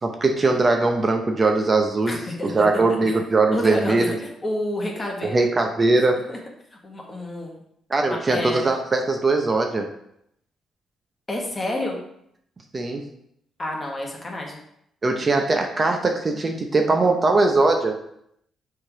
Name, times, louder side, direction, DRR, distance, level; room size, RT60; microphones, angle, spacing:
voice 1, 0.0-4.2 5.2-6.2 7.9-9.9 12.7-13.0 15.0-18.0, right 3 dB, 30° right, 3 dB, 0.8 m, -21 dB
voice 2, 2.1-3.1 3.5-5.4 6.3-6.4 6.8-7.6 8.0-8.7 11.3-12.0 13.6-14.6, left 1 dB, 25° left, 0 dB, 1.6 m, -29 dB
6.4 x 3.8 x 4.8 m, 0.74 s
cardioid pair, 90°, 0 cm